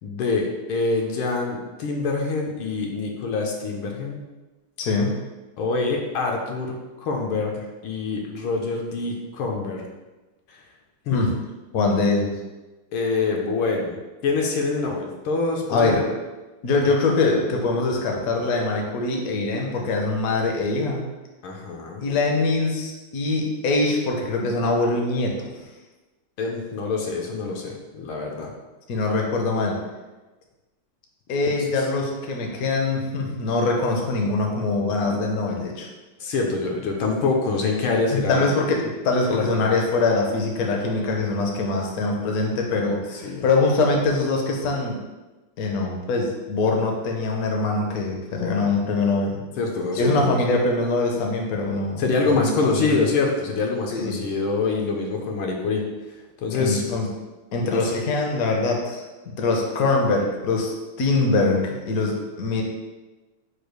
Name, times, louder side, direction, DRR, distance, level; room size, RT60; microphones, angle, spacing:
voice 1, 0.0-4.2 5.6-9.8 10.5-10.6 11.1-11.3 12.9-14.0 14.2-16.1 21.4-22.1 26.4-28.5 31.8-31.9 36.2-38.5 39.3-39.8 43.1-43.5 49.6-50.4 52.0-55.8 56.1-56.8 57.7-57.9, left 3 dB, 80° left, 0 dB, 1.4 m, -25 dB
voice 2, 4.8-5.1 11.1-11.3 11.7-12.3 15.7-16.0 16.6-21.1 22.0-25.3 28.9-29.8 31.3-35.9 38.1-45.0 45.6-49.4 50.0-53.0 53.9-54.2 56.6-57.1 57.5-59.0 59.4-62.6, left 3 dB, 65° left, 0 dB, 0.9 m, -23 dB
4.8 x 2.3 x 4.7 m, 1.2 s
omnidirectional pair, 2.3 m